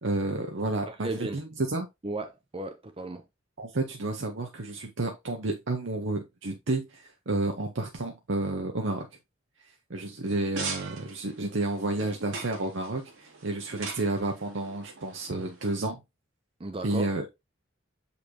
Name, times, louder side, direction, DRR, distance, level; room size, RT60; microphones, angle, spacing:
voice 1, 0.0-1.9 3.6-9.1 9.9-16.0 16.8-17.3, right 2 dB, 70° right, 0.9 m, -31 dB
voice 2, 0.9-1.4 2.0-3.2 16.6-17.1, right 2 dB, 25° right, 0.6 m, -35 dB
sound 1, 10.2-15.7, right 4 dB, 85° right, 2.4 m, -41 dB
6.4 x 5.5 x 2.8 m
head